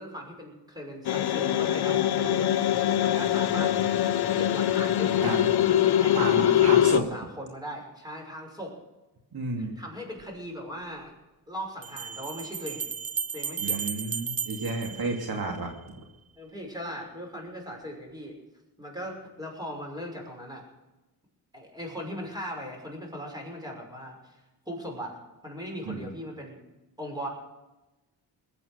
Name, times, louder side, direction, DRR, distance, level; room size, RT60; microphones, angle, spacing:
voice 1, 0.0-4.0 4.4-8.7 9.6-11.1 11.5-12.9 13.3-13.8 16.4-18.4 18.8-20.6 21.5-24.4 24.7-25.2 25.4-26.6 27.0-27.3, equal, 10° right, 0 dB, 5.9 m, -39 dB
sound 1, 1.0-7.0, left 11 dB, 70° left, 0.9 m, -23 dB
voice 2, 6.1-7.0 9.3-9.7 13.6-16.0 25.9-26.0, right 3 dB, 65° right, 2 dB, 2.5 m, -32 dB
sound 2, 10.2-10.3 11.8-15.8, right 6 dB, 35° right, 0.9 m, -34 dB
20.5 x 8.6 x 6.6 m, 1.0 s
cardioid pair, 85°, 39 cm